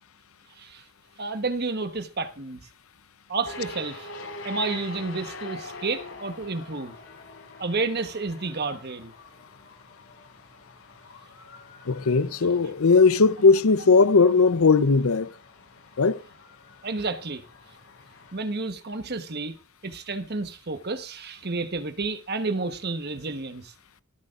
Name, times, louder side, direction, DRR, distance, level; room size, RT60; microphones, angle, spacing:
voice 1, 1.2-2.7 3.3-4.1 4.4-7.0 7.6-9.1 16.8-17.4 18.3-19.6 19.8-23.7, right 3 dB, 50° right, 1.2 m, -30 dB
sound 1, 3.4-18.3, left 3 dB, 65° left, 5.1 m, -44 dB
voice 2, 11.9-15.3 16.0-16.2, left 4 dB, 80° left, 0.7 m, -18 dB
24.5 x 8.3 x 2.5 m
head